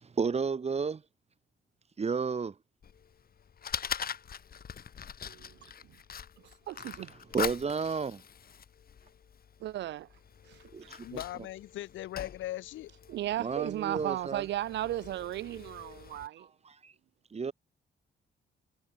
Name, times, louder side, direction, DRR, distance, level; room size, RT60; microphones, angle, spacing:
voice 1, 0.0-1.0 2.0-2.5 7.3-8.2 10.7-11.2 13.4-14.4 16.4-16.9 17.3-17.5, right 5 dB, 30° right, 1.6 m, -32 dB
Fire, 2.8-16.3, left 7 dB, 50° left, 2.9 m, -43 dB
voice 2, 5.2-5.6 6.7-7.1 9.6-10.1 10.5-10.9 13.1-16.5, right 14 dB, 65° right, 0.4 m, -35 dB
voice 3, 11.0-12.9, left 14 dB, 80° left, 0.9 m, -39 dB
cardioid pair, 90°, 20 cm